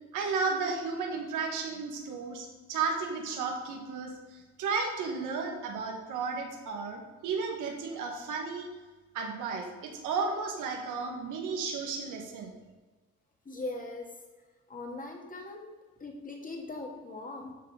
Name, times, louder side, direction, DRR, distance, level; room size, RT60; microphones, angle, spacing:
voice 1, 0.1-8.7 9.1-12.5, right 4 dB, 85° right, 2 dB, 1.6 m, -33 dB
voice 2, 13.5-14.2 14.7-15.7 16.0-17.5, left 2 dB, 25° left, 2 dB, 2.0 m, -40 dB
12.0 x 4.1 x 4.9 m, 1.3 s
cardioid pair, 90°, 30 cm